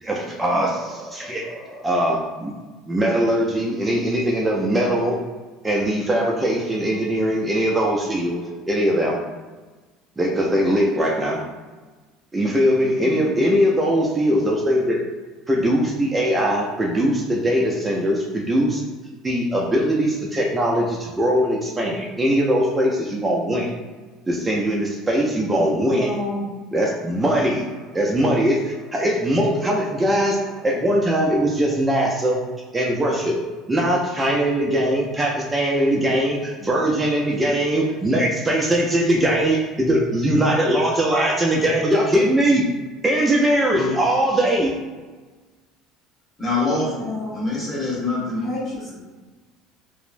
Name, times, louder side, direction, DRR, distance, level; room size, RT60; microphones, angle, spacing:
voice 1, 0.0-2.5 2.8-5.1 5.6-9.2 10.2-11.4 12.3-15.0 15.5-18.8 19.2-23.7 24.3-26.1 26.7-32.4 32.7-33.4 33.7-42.6 43.0-44.7, equal, 20° right, -2 dB, 0.4 m, -21 dB
voice 2, 26.0-26.5 47.0-47.4 48.4-48.9, left 1 dB, 40° left, -5 dB, 0.8 m, -30 dB
voice 3, 46.4-48.5, left 3 dB, 25° left, -6 dB, 1.5 m, -25 dB
2.9 x 2.0 x 2.5 m, 1.3 s
supercardioid pair, 85°, 0 cm